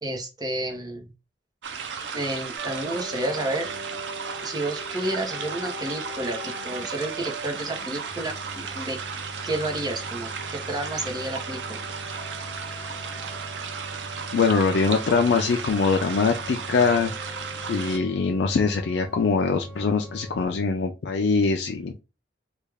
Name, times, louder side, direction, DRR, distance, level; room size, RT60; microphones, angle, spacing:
voice 1, 0.0-1.1 2.1-3.7 4.4-6.4 6.6-9.0 9.4-11.8, right 1 dB, 20° right, 1 dB, 0.8 m, -30 dB
sound 1, 1.6-18.0, right 6 dB, 85° right, 0.6 m, -35 dB
sound 2, 2.6-20.5, right 1 dB, 60° right, 1.0 m, -41 dB
voice 2, 14.3-17.4 17.7-21.9, left 4 dB, 70° left, 3 dB, 0.4 m, -23 dB
3.3 x 2.3 x 3.3 m, 0.27 s
head